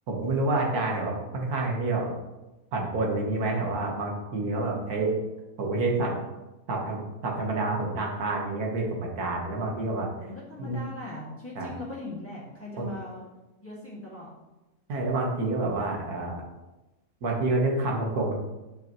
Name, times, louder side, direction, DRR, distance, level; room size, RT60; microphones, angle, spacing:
voice 1, 0.1-2.1 2.7-5.1 5.6-6.2 6.7-10.1 10.6-10.8 11.6-11.7 12.8-12.9 14.9-16.4 17.2-18.3, right 2 dB, 75° right, -1 dB, 1.7 m, -28 dB
voice 2, 10.2-13.3 13.6-14.3, left 2 dB, 10° left, -7 dB, 2.0 m, -40 dB
10.0 x 5.5 x 3.0 m, 1.0 s
omnidirectional pair, 1.6 m